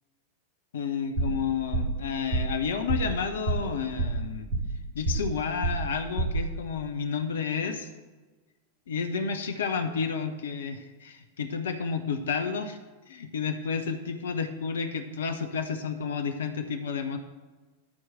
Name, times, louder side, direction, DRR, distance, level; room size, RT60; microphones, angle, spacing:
voice 1, 0.7-4.5 4.9-7.9 8.9-12.8 13.1-17.2, left 6 dB, 65° left, 8 dB, 0.8 m, -31 dB
sound 1, 1.2-1.4 1.7-2.0 2.3-2.6 2.9-3.1 3.5-3.7 4.0-4.8 5.0-5.4 5.6-5.9 6.2-6.5, right 2 dB, 45° right, 2.7 m, -28 dB
12.5 x 4.7 x 7.6 m, 1.3 s
figure-of-eight pair, 90°, 0 cm